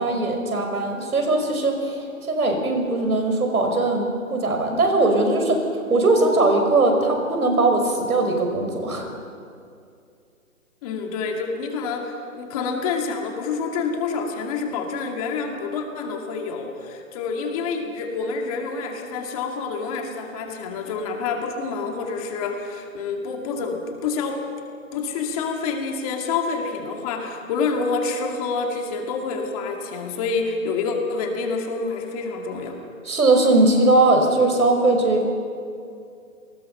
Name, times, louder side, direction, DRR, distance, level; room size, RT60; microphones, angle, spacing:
voice 1, 0.0-2.0 2.3-5.6 5.9-9.1 33.0-35.3, right 2 dB, 80° right, 3 dB, 6.0 m, -20 dB
voice 2, 10.8-24.4 24.9-32.8, left 4 dB, 25° left, 2 dB, 2.4 m, -27 dB
28.5 x 20.5 x 5.7 m, 2.4 s
hypercardioid pair, 155°, 43 cm